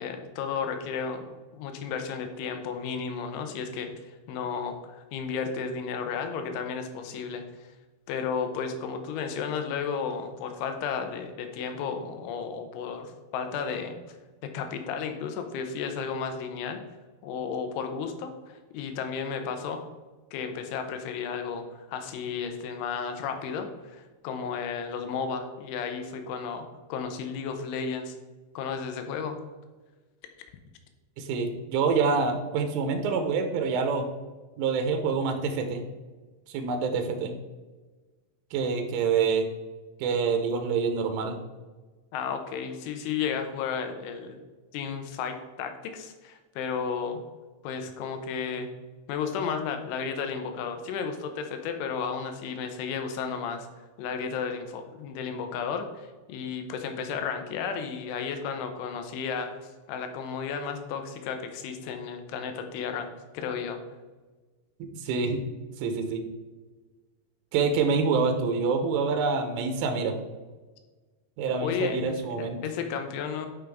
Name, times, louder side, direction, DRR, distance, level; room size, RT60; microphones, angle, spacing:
voice 1, 0.0-3.9 4.3-7.4 8.1-14.0 14.4-16.8 17.2-19.8 20.3-28.2 28.5-29.4 42.1-44.4 44.7-47.2 47.6-48.7 49.1-53.7 54.0-63.1 63.3-63.8 71.6-73.5, left 6 dB, 80° left, 6 dB, 3.3 m, -33 dB
voice 2, 31.2-34.1 34.6-35.8 36.5-37.3 38.5-39.5 40.0-41.4 64.8-65.4 65.8-66.2 67.5-70.2 71.4-72.6, right 5 dB, 90° right, 6 dB, 3.4 m, -26 dB
10.0 x 5.6 x 3.5 m, 1.3 s
omnidirectional pair, 5.5 m